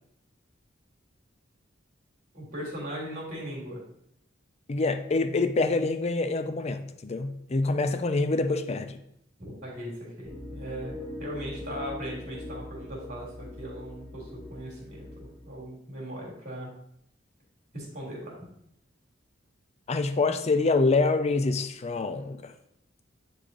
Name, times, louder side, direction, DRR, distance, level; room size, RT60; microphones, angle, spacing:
voice 1, 2.3-3.8 9.4-10.9 11.2-16.7 17.7-18.4, equal, 45° right, -5 dB, 2.0 m, -38 dB
voice 2, 4.7-9.0 19.9-22.5, left 3 dB, 35° left, 10 dB, 0.5 m, -26 dB
sound 1, 10.2-15.6, left 1 dB, 5° right, 1.4 m, -41 dB
9.0 x 3.3 x 3.7 m, 0.74 s
head